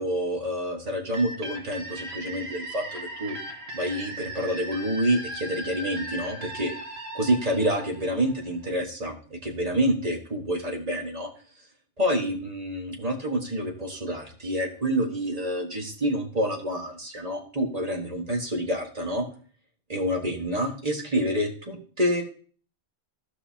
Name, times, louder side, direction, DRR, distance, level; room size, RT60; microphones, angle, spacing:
voice 1, 0.0-3.4 3.7-6.7 7.1-11.3 12.0-19.2 19.9-22.2, equal, 35° right, 1 dB, 1.6 m, -28 dB
sound 1, 1.1-8.7, right 1 dB, 80° right, 1.6 m, -38 dB
15.5 x 5.5 x 2.8 m, 0.42 s
omnidirectional pair, 1.1 m